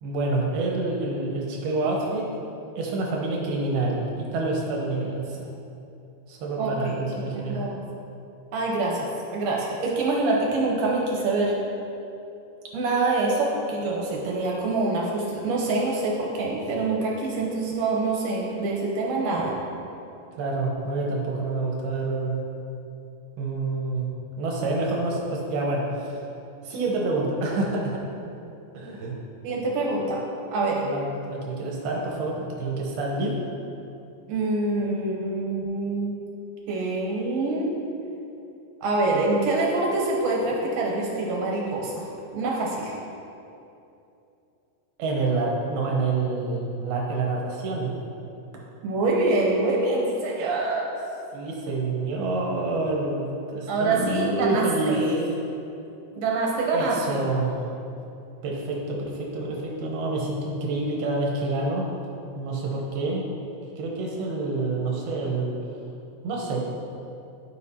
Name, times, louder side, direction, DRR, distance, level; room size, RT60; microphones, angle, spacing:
voice 1, 0.0-2.3 2.8-5.5 6.3-7.7 20.4-22.4 23.4-24.1 24.4-26.2 26.6-28.0 28.7-29.2 30.8-33.4 45.0-47.9 51.3-55.0 56.7-57.6 58.4-61.9 62.4-63.3 63.8-65.6 66.2-66.6, right 3 dB, 90° right, -2 dB, 3.0 m, -27 dB
voice 2, 6.6-6.9 7.3-7.8 8.5-11.6 12.7-19.5 29.4-30.2 30.5-30.9 34.3-36.2 36.7-37.8 38.8-42.0 42.3-42.9 48.8-50.9 53.7-55.3 56.2-57.2, right 2 dB, 70° right, -2 dB, 2.2 m, -25 dB
13.0 x 5.0 x 2.8 m, 2.8 s
omnidirectional pair, 4.3 m